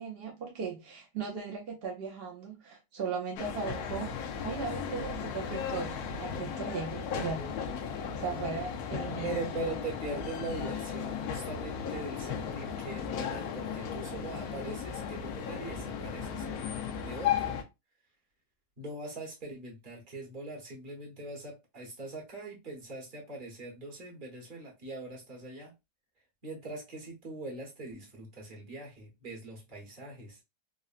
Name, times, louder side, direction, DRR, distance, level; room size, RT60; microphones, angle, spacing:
voice 1, 0.0-7.5 7.9-9.8, right 5 dB, 75° right, 0.5 m, -38 dB
sound 1, 3.4-17.6, left 7 dB, 70° left, 1.0 m, -36 dB
voice 2, 9.2-16.5 17.0-17.5 18.8-25.7 26.4-30.4, right 3 dB, 35° right, 1.0 m, -41 dB
3.7 x 2.1 x 2.4 m
omnidirectional pair, 1.8 m